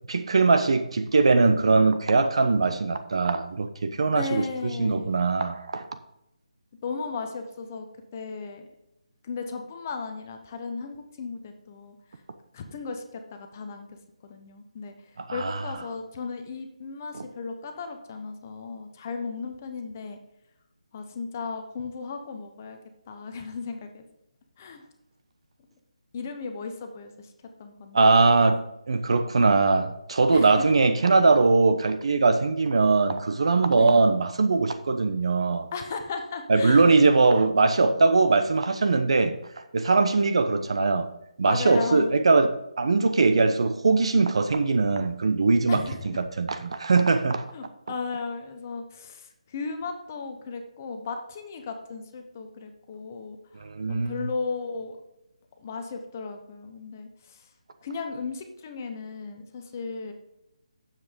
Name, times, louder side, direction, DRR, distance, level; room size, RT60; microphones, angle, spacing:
voice 1, 0.1-4.5 4.8-5.9 15.2-15.6 27.9-28.6 28.9-35.7 36.5-39.4 39.7-41.1 41.4-47.5 53.6-54.3, right 3 dB, 50° right, 0.9 m, -21 dB
voice 2, 4.0-5.3 6.8-7.9 8.1-8.7 9.2-11.9 12.5-14.9 15.3-20.2 20.9-22.8 23.1-24.0 24.6-24.8 26.1-27.3 27.6-28.5 30.3-30.7 33.7-34.1 35.7-37.1 41.4-42.1 45.7-46.1 47.5-55.0 55.6-57.5 57.8-60.1, left 4 dB, 25° left, 0.8 m, -36 dB
9.3 x 7.5 x 3.7 m
hypercardioid pair, 170°, 4 cm